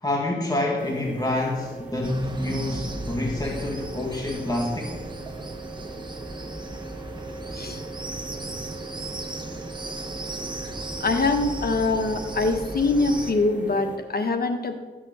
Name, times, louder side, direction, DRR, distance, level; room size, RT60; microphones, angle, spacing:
voice 1, 0.0-5.1, left 2 dB, 20° left, -1 dB, 2.0 m, -28 dB
sound 1, 0.8-14.0, right 3 dB, 10° right, 3.1 m, -39 dB
sound 2, 2.0-13.3, right 1 dB, 25° right, 1.5 m, -36 dB
voice 2, 11.0-14.8, left 3 dB, 65° left, 6 dB, 1.5 m, -24 dB
13.5 x 6.3 x 8.1 m, 1.3 s
cardioid pair, 50°, 17 cm